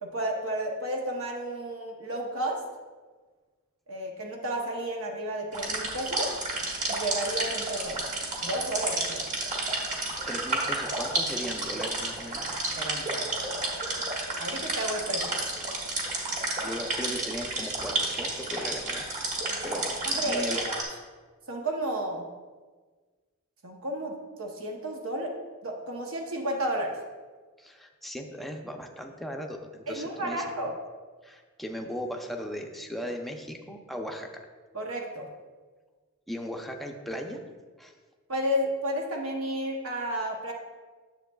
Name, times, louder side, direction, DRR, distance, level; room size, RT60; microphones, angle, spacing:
voice 1, 0.0-2.6 3.9-6.3 6.9-8.0 8.4-9.2 12.3-13.7 14.4-15.5 20.1-20.8 21.5-22.3 23.6-25.3 25.6-26.9 29.9-30.7 34.7-35.3 38.3-40.5, right 1 dB, 70° right, 1 dB, 0.9 m, -32 dB
sound 1, 5.5-20.8, right 2 dB, 35° right, 1.5 m, -31 dB
voice 2, 10.3-12.5 16.6-19.0 19.6-20.6 27.6-30.4 31.2-34.4 36.3-37.4 37.8-37.9, equal, ahead, 2 dB, 0.6 m, -37 dB
10.0 x 7.3 x 2.3 m, 1.4 s
head